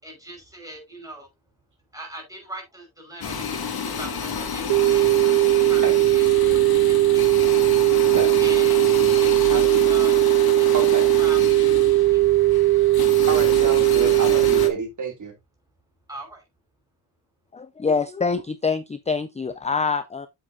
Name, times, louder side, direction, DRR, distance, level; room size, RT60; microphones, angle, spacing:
voice 1, 0.0-1.3 1.9-7.4 8.4-10.9 11.2-12.7 16.1-16.4, right 1 dB, 10° right, 5.4 m, -41 dB
sound 1, 3.2-14.7, left 6 dB, 65° left, 1.9 m, -30 dB
sound 2, 4.7-14.7, right 17 dB, 85° right, 0.6 m, -18 dB
voice 2, 9.5-9.8 10.7-11.1 13.3-15.3, right 4 dB, 50° right, 2.9 m, -29 dB
voice 3, 17.5-20.3, left 5 dB, 15° left, 0.5 m, -25 dB
8.6 x 7.7 x 2.7 m
wide cardioid pair, 135°, 40 cm